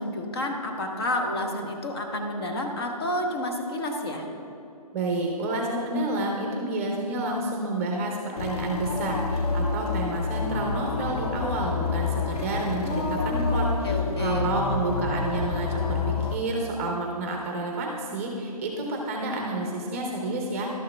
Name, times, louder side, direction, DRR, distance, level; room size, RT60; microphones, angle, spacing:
voice 1, 0.0-4.3 12.8-13.6 13.8-14.5, left 1 dB, 40° left, 2 dB, 1.1 m, -30 dB
voice 2, 4.9-13.9 14.2-20.7, right 2 dB, 20° right, 0 dB, 0.8 m, -29 dB
sound 1, 8.4-16.4, left 4 dB, 80° left, 0.8 m, -28 dB
12.0 x 6.5 x 3.4 m, 2.7 s
hypercardioid pair, 165°, 20 cm